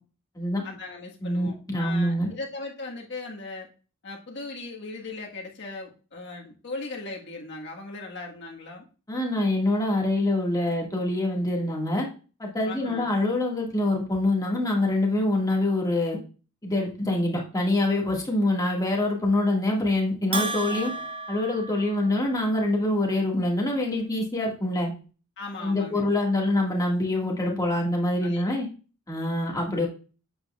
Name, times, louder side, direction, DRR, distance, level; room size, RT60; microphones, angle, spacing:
voice 1, 0.6-3.7 4.0-8.9 12.6-13.1 25.4-26.1 28.2-28.4, left 3 dB, 55° left, -1 dB, 1.6 m, -38 dB
voice 2, 1.2-2.3 9.1-12.1 12.4-16.2 16.6-20.9 21.3-24.9 25.6-28.7 29.1-29.9, left 1 dB, 15° left, -2 dB, 1.9 m, -25 dB
Bell, 20.3-22.5, right 3 dB, 25° right, 1.0 m, -33 dB
9.3 x 8.1 x 2.4 m, 0.35 s
head